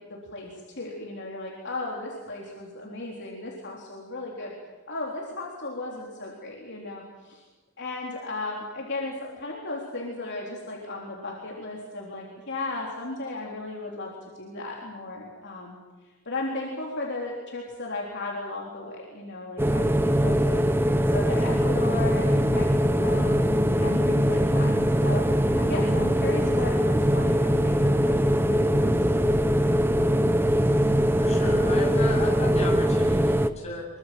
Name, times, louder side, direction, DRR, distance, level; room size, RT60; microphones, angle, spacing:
voice 1, 0.1-4.5 4.9-7.4 7.8-15.8 16.0-20.6 21.1-23.4 23.8-29.3, left 2 dB, 50° left, -2 dB, 3.7 m, -35 dB
sound 1, 19.6-33.5, equal, 10° right, 0.8 m, -22 dB
voice 2, 31.2-33.9, left 2 dB, 30° left, -1 dB, 7.9 m, -34 dB
24.5 x 24.0 x 7.7 m, 1.3 s
head